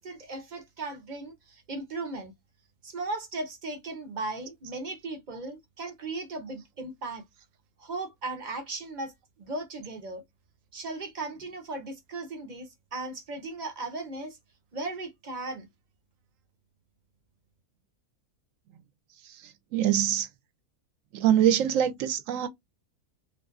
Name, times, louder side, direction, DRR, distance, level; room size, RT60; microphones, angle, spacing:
voice 1, 0.0-2.3 2.8-7.2 7.8-10.2 10.7-14.4 14.7-15.7, right 2 dB, 50° right, 0.5 m, -37 dB
voice 2, 19.7-20.3 21.1-22.5, right 10 dB, 70° right, 0.9 m, -23 dB
2.5 x 2.4 x 2.3 m
omnidirectional pair, 1.6 m